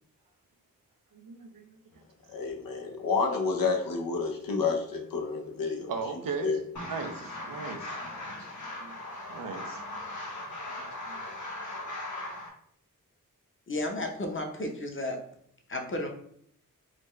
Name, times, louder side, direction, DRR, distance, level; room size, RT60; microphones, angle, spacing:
voice 1, 1.1-1.8 5.6-8.0 8.4-8.5 8.8-9.0 9.3-9.8 10.8-11.3, right 5 dB, 75° right, 5 dB, 0.6 m, -38 dB
voice 2, 2.3-5.9 6.4-6.6, left 4 dB, 85° left, 2 dB, 0.6 m, -29 dB
sound 1, 6.8-12.5, left 1 dB, 60° left, 1.0 m, -39 dB
voice 3, 13.7-15.2 15.7-16.1, left 1 dB, 35° left, 3 dB, 0.8 m, -33 dB
3.9 x 2.2 x 3.2 m, 0.66 s
cardioid pair, 50°, 33 cm